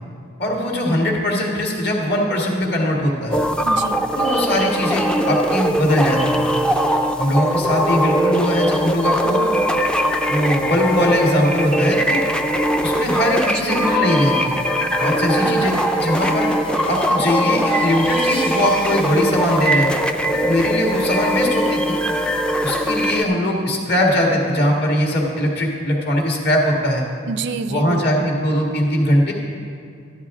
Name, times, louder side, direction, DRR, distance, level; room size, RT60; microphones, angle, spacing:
voice 1, 0.4-3.4 4.2-6.5 7.2-9.4 10.3-12.2 12.8-14.6 15.0-16.5 16.9-19.9 20.3-22.0 22.6-27.0 27.7-29.3, left 1 dB, 55° left, -1 dB, 1.8 m, -20 dB
sound 1, 3.3-23.2, equal, 5° left, 0.4 m, -20 dB
voice 2, 3.7-4.0 9.2-9.8 13.5-13.9 15.4-15.8 27.3-28.4, right 4 dB, 60° right, 11 dB, 0.4 m, -29 dB
sound 2, 13.9-19.8, left 3 dB, 25° left, 0.8 m, -36 dB
13.0 x 11.0 x 3.7 m, 2.4 s
head